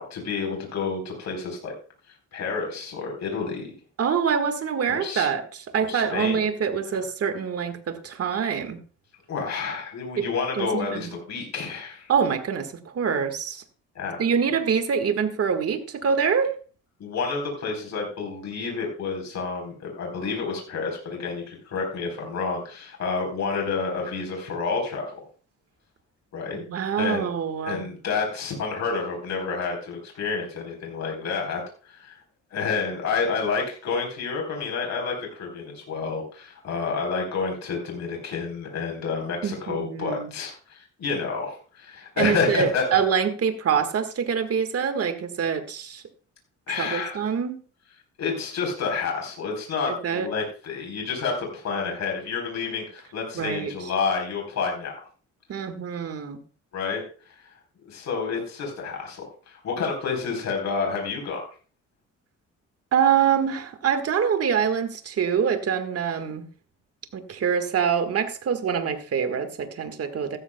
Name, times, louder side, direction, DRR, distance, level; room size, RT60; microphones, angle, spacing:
voice 1, 0.0-1.7 2.3-3.7 4.9-5.3 5.9-6.4 9.3-12.1 13.9-14.2 17.0-25.1 26.3-26.6 27.0-27.3 27.6-32.2 32.5-42.9 46.7-47.2 48.2-55.0 56.7-57.0 57.8-61.4, left 5 dB, 65° left, 1 dB, 4.1 m, -29 dB
voice 2, 4.0-8.8 10.2-10.3 10.6-11.1 12.1-13.6 14.2-16.5 26.5-27.8 39.4-40.3 42.2-46.0 46.7-47.6 50.0-50.3 53.3-53.7 55.5-56.4 62.9-66.5 67.1-70.4, right 7 dB, 50° right, 8 dB, 1.7 m, -25 dB
15.0 x 13.0 x 2.3 m, 0.39 s
cardioid pair, 90°, 30 cm